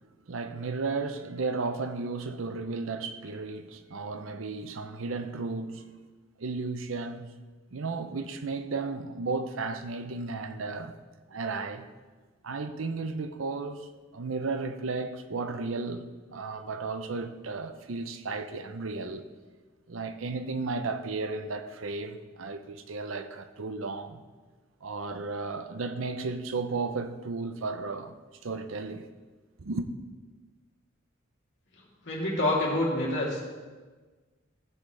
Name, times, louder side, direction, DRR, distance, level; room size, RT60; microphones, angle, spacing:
voice 1, 0.3-5.8 6.4-7.3 7.7-11.0 11.3-11.9 12.4-19.2 19.9-24.2 24.8-28.1 28.4-29.1 29.6-29.9, right 3 dB, 75° right, 0.7 m, -34 dB
voice 2, 32.0-33.4, left 1 dB, 65° left, 3.0 m, -27 dB
15.0 x 7.5 x 3.4 m
head